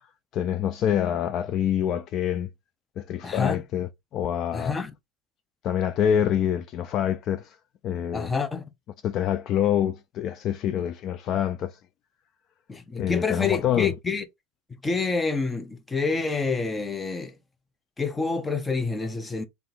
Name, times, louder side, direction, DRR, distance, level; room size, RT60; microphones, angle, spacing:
voice 1, 0.3-2.5 3.0-4.8 5.6-7.6 7.8-8.3 9.0-11.8 12.9-13.9, left 10 dB, 40° left, 0.3 m, -26 dB
voice 2, 3.2-3.6 4.5-4.9 8.1-8.6 12.7-14.2 14.8-17.3 18.0-19.4, left 4 dB, 10° left, 0.7 m, -27 dB
3.4 x 2.8 x 4.0 m
supercardioid pair, 130°, 0 cm